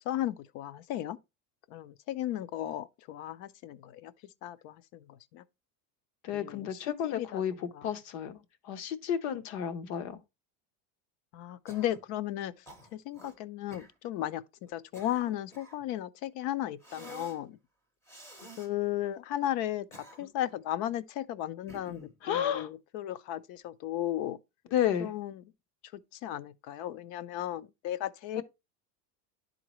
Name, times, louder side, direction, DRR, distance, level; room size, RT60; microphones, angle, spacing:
voice 1, 0.1-1.2 1.7-4.1 4.4-5.4 6.3-7.4 7.7-7.9 11.3-12.5 12.9-14.4 14.7-17.6 18.6-24.4 25.0-25.4 26.1-28.4, left 12 dB, 50° left, 0.5 m, -35 dB
voice 2, 6.2-7.5 7.8-8.4 8.6-10.2 22.2-22.7 24.7-25.1 28.4-28.5, left 9 dB, 70° left, 1.0 m, -31 dB
Cough, 11.7-12.1 12.7-13.4 13.7-13.9 14.7-15.8 16.8-17.4 18.1-18.7 19.7-20.5 21.7-22.2, equal, 5° left, 0.6 m, -50 dB
11.0 x 3.8 x 3.0 m
cardioid pair, 170°, 40 cm